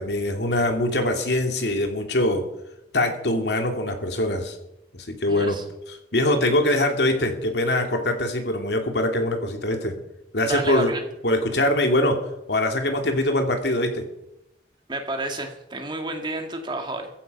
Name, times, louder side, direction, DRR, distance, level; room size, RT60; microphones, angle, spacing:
voice 1, 0.0-2.4 2.9-4.6 4.9-5.6 5.9-10.0 10.3-10.9 11.2-12.2 12.5-14.1, left 1 dB, 70° left, 4 dB, 2.7 m, -23 dB
voice 2, 5.3-5.6 10.4-11.0 14.9-17.1, right 2 dB, 25° right, 4 dB, 2.2 m, -30 dB
15.5 x 15.0 x 5.5 m, 0.87 s
head